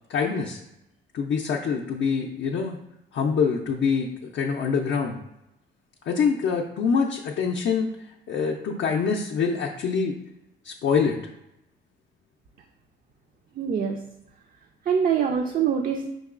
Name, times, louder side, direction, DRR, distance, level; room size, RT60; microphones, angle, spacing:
voice 1, 0.1-0.6 1.1-2.8 3.1-5.2 6.0-10.1 10.6-11.2, left 5 dB, 60° left, 1 dB, 0.5 m, -25 dB
voice 2, 13.6-14.0 14.9-16.1, right 7 dB, 45° right, 4 dB, 0.4 m, -24 dB
5.3 x 2.9 x 2.4 m, 0.87 s
cardioid pair, 90°, 20 cm